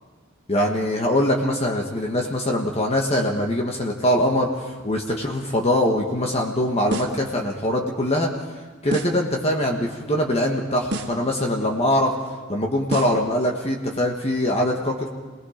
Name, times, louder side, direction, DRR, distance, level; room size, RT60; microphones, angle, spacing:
voice 1, 0.5-8.3 8.8-12.1 12.5-15.1, left 1 dB, 30° left, 0 dB, 1.5 m, -23 dB
sound 1, 6.9-7.3 8.9-9.3 10.9-11.3 12.9-13.3, right 1 dB, 55° right, 1.9 m, -30 dB
28.5 x 19.5 x 5.1 m, 1.4 s
head